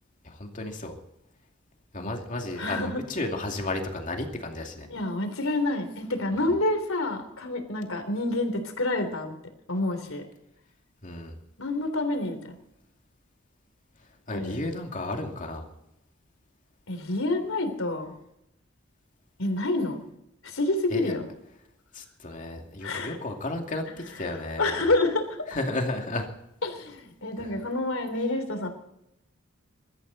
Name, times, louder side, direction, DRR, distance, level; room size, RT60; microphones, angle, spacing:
voice 1, 0.2-0.9 1.9-4.9 11.0-11.4 14.3-15.7 20.9-21.1 21.9-23.9 24.1-24.9 25.5-26.3 27.4-27.5, left 2 dB, 40° left, 2 dB, 2.5 m, -33 dB
voice 2, 2.5-3.0 4.9-9.3 9.7-10.2 11.6-12.6 14.3-14.7 16.9-18.1 19.4-20.0 20.4-21.2 22.8-23.2 24.1-25.4 26.6-28.7, left 2 dB, 85° left, 6 dB, 3.4 m, -28 dB
22.0 x 14.0 x 4.1 m, 0.84 s
head